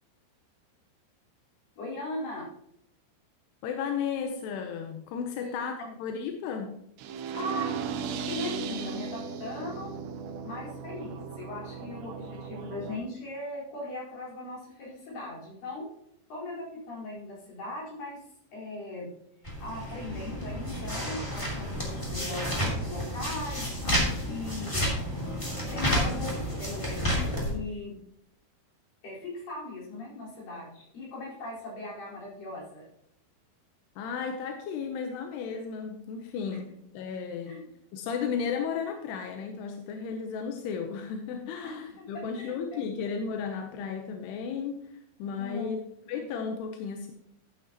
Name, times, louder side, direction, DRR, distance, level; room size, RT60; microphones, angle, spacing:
voice 1, 1.8-2.5 5.4-5.9 7.3-7.9 8.3-10.0 10.4-15.9 16.3-19.1 19.6-24.9 25.7-27.0 27.4-28.0 29.0-32.9 37.4-37.6 42.3-42.8 45.4-45.8, left 2 dB, 50° left, -6 dB, 5.9 m, -39 dB
voice 2, 3.6-6.8 34.0-37.6 37.9-45.8 46.1-47.1, left 6 dB, 80° left, 4 dB, 2.6 m, -34 dB
sound 1, 7.0-13.0, right 6 dB, 80° right, 3.0 m, -36 dB
sound 2, 19.4-27.5, equal, 10° left, 1.7 m, -31 dB
12.0 x 9.5 x 3.0 m, 0.74 s
omnidirectional pair, 5.3 m